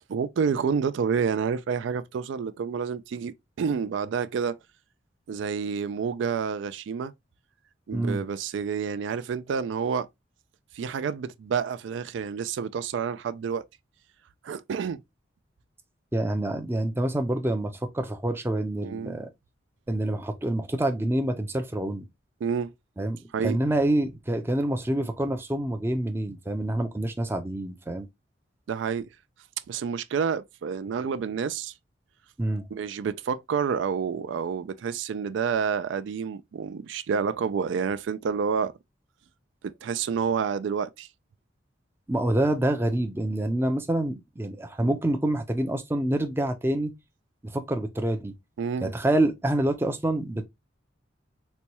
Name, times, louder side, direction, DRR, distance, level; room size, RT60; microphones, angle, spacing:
voice 1, 0.1-4.6 5.3-7.1 7.9-10.1 10.7-13.6 14.4-15.0 18.8-19.2 22.4-22.7 23.3-23.6 28.7-29.1 29.7-31.7 32.7-38.7 39.6-41.1 44.8-45.0 48.6-48.9, right 6 dB, 75° right, 0.3 m, -29 dB
voice 2, 7.9-8.2 16.1-19.3 19.9-22.1 23.0-23.2 23.4-28.1 32.4-32.7 42.1-46.9 47.4-48.3 48.8-50.4, right 1 dB, 15° right, 0.4 m, -27 dB
4.1 x 2.2 x 2.9 m
head